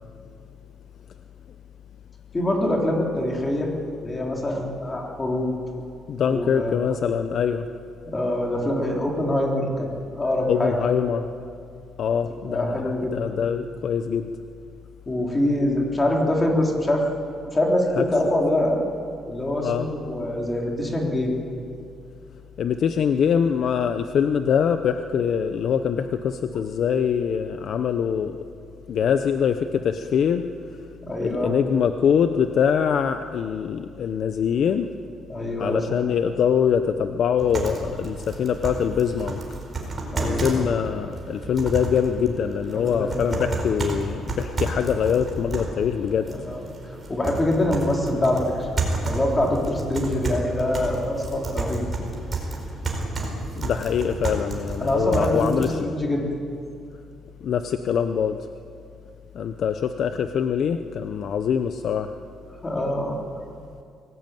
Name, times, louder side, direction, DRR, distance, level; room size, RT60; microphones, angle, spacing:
voice 1, 2.3-3.7 4.0-5.5 6.2-6.9 8.0-10.9 12.4-13.4 15.1-17.0 17.5-18.8 19.3-21.3 31.0-31.6 35.3-36.0 40.1-40.6 42.7-43.5 46.3-46.7 47.1-48.7 49.0-51.8 54.8-56.2 62.6-63.2, left 1 dB, 15° left, 0 dB, 3.8 m, -24 dB
voice 2, 6.1-7.7 10.5-11.3 12.0-14.3 18.0-18.1 19.6-19.9 22.6-28.4 28.9-30.4 31.2-34.9 35.6-39.4 40.2-46.3 53.6-55.7 57.4-58.4 59.3-62.1, left 7 dB, 50° left, 8 dB, 0.8 m, -23 dB
sound 1, 37.4-55.6, right 3 dB, 25° right, 4.5 m, -31 dB
23.0 x 18.5 x 9.2 m, 2.4 s
cardioid pair, 160°, 0 cm